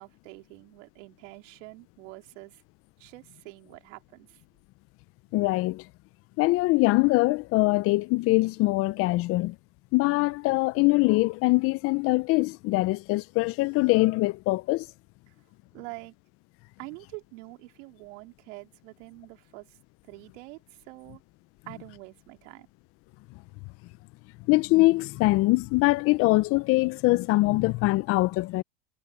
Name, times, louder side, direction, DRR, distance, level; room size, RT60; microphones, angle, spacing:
voice 1, 0.0-2.6 3.0-4.4 15.7-16.1 16.8-19.8 20.0-21.2 21.7-22.7, right 25 dB, 65° right, 3.8 m, -45 dB
voice 2, 5.3-5.8 6.4-9.6 9.9-14.9 24.5-28.6, left 21 dB, 35° left, 0.6 m, -23 dB
supercardioid pair, 135°, 40 cm